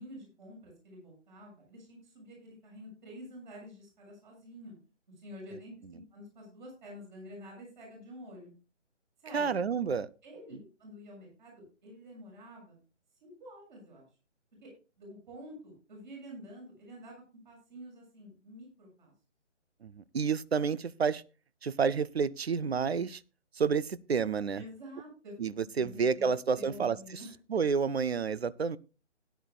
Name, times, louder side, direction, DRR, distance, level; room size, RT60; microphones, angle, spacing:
voice 1, 0.0-4.7 5.2-8.5 9.2-9.5 10.2-12.8 13.2-14.1 14.6-14.7 15.0-19.1 24.5-25.3 25.8-27.3, equal, 40° right, 7.0 m, -49 dB
voice 2, 9.3-10.1 19.8-21.2 21.6-23.2 23.6-24.6 25.4-27.0 27.5-28.8, right 6 dB, 60° right, 0.6 m, -29 dB
16.5 x 10.5 x 2.4 m
figure-of-eight pair, 150°, 37 cm